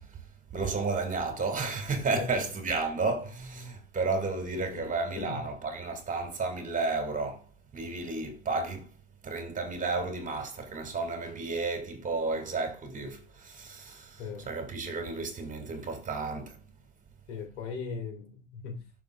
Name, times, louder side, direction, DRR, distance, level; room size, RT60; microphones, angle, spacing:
voice 1, 0.5-7.5 7.7-8.9 9.2-16.6, right 3 dB, 20° right, 2.2 m, -32 dB
voice 2, 4.7-5.4 14.2-14.5 17.3-18.8, left 5 dB, 70° left, 2.4 m, -38 dB
12.0 x 5.7 x 2.4 m
hypercardioid pair, 95°, 36 cm